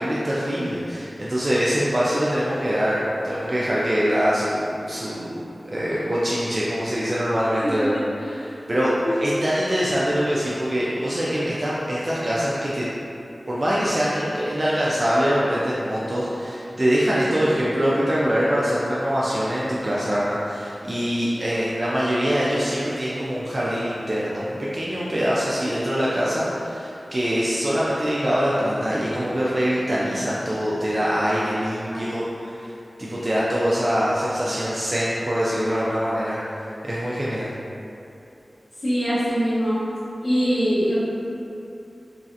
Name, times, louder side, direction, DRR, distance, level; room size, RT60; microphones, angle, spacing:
voice 1, 0.0-3.0 3.2-8.9 9.2-12.9 13.5-32.7 33.0-37.5, equal, 40° right, -8 dB, 0.4 m, -24 dB
voice 2, 38.8-39.8 40.2-40.9, equal, 55° left, -16 dB, 1.0 m, -23 dB
3.1 x 2.7 x 2.4 m, 2.8 s
wide cardioid pair, 55°, 0 cm